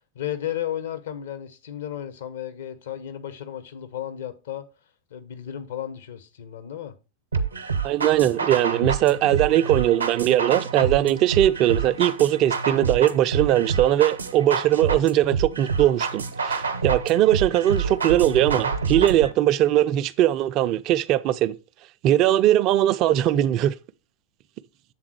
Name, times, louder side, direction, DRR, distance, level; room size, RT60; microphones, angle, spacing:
voice 1, 0.1-4.6 5.1-6.9, left 11 dB, 60° left, 0.8 m, -33 dB
sound 1, 7.3-19.3, right 5 dB, 75° right, 0.7 m, -28 dB
voice 2, 7.8-21.6 22.0-23.7, right 12 dB, 40° right, 0.4 m, -20 dB
7.5 x 3.6 x 4.6 m
figure-of-eight pair, 90°, 0 cm